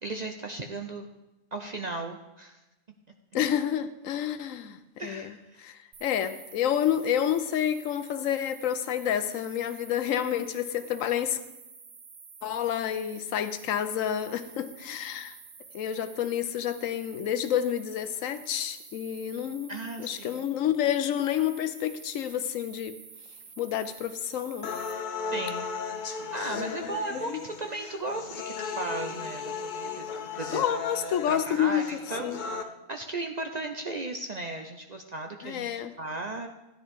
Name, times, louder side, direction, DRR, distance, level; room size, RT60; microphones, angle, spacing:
voice 1, 0.0-1.1 1.5-2.6 5.0-5.7 19.7-20.4 25.2-25.7 26.3-30.6 31.3-31.8 32.1-32.4 32.9-36.5, right 2 dB, 50° right, 0.5 m, -36 dB
voice 2, 3.3-4.8 5.0-11.4 12.4-15.4 15.7-23.0 23.6-24.7 26.5-27.4 30.5-32.4 35.4-36.0, left 10 dB, 70° left, 1.0 m, -29 dB
sound 1, 5.9-24.9, right 5 dB, 80° right, 1.7 m, -49 dB
sound 2, 24.6-32.6, left 5 dB, 50° left, 0.6 m, -36 dB
13.5 x 9.9 x 3.6 m
omnidirectional pair, 1.5 m